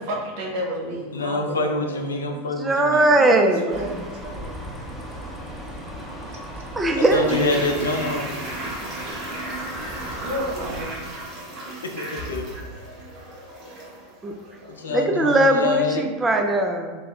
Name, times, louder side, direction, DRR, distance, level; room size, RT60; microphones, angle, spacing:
voice 1, 0.0-2.1 3.1-4.5 6.3-6.6 7.0-7.1 8.7-15.0, equal, 55° right, -2 dB, 0.9 m, -35 dB
voice 2, 1.1-3.0 6.9-8.4 12.0-12.5 14.7-16.0, left 2 dB, 75° left, 3 dB, 0.4 m, -26 dB
voice 3, 2.3-3.9 6.8-7.3 14.2-14.3 14.9-17.0, right 2 dB, 15° right, 3 dB, 0.3 m, -20 dB
sound 1, 3.7-10.8, equal, ahead, 0.8 m, -37 dB
Toilet flush, 7.0-14.0 14.3-14.4, right 2 dB, 40° right, 1.4 m, -34 dB
3.3 x 2.2 x 4.1 m, 1.4 s
figure-of-eight pair, 85°, 0 cm